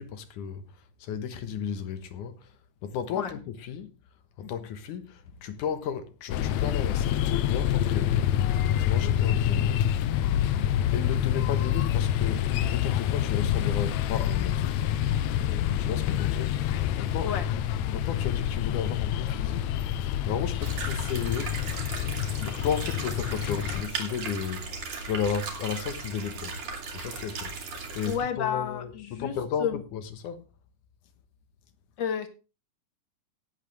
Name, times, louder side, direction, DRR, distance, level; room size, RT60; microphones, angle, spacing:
voice 1, 0.0-3.9 4.4-9.9 10.9-14.8 15.7-21.7 22.2-26.6 26.9-27.6 27.9-30.5, left 7 dB, 65° left, 2.6 m, -34 dB
sound 1, 6.3-23.8, left 10 dB, 90° left, 1.6 m, -27 dB
sound 2, 20.6-28.2, right 4 dB, 60° right, 4.1 m, -37 dB
voice 2, 28.1-29.3 29.6-29.8 32.0-32.3, left 8 dB, 45° left, 1.8 m, -30 dB
18.0 x 8.2 x 3.4 m
omnidirectional pair, 4.2 m